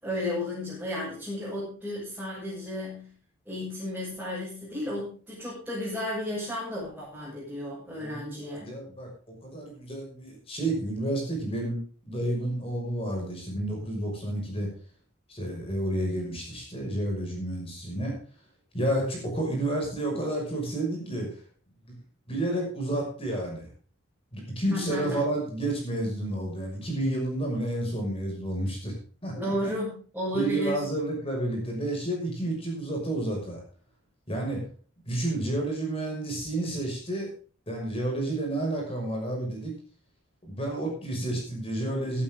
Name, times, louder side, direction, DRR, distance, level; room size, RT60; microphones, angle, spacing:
voice 1, 0.0-3.1 3.5-8.7 24.7-25.3 29.3-30.9, left 1 dB, 5° right, -9 dB, 7.3 m, -33 dB
voice 2, 8.0-9.1 9.4-11.8 12.1-14.7 15.3-18.1 18.7-21.4 22.3-23.7 24.3-28.9 29.2-29.7 30.3-33.6 34.3-34.6 35.1-37.3 37.7-39.7 40.4-42.2, right 1 dB, 25° left, 1 dB, 5.9 m, -30 dB
16.0 x 11.5 x 3.8 m, 0.41 s
head